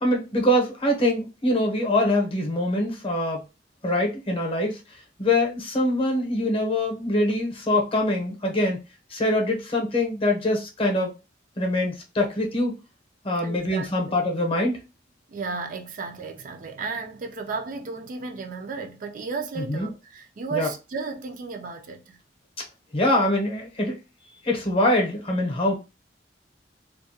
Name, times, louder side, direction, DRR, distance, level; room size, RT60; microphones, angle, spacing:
voice 1, 0.0-3.4 3.8-4.8 5.2-8.8 9.1-11.1 11.6-12.7 13.2-14.8 19.6-19.9 20.5-20.7 22.9-24.0 24.4-25.7, left 1 dB, 30° left, 0.7 m, -24 dB
voice 2, 13.4-14.1 15.3-22.2, right 4 dB, 50° right, 0.4 m, -34 dB
2.3 x 2.1 x 2.7 m
head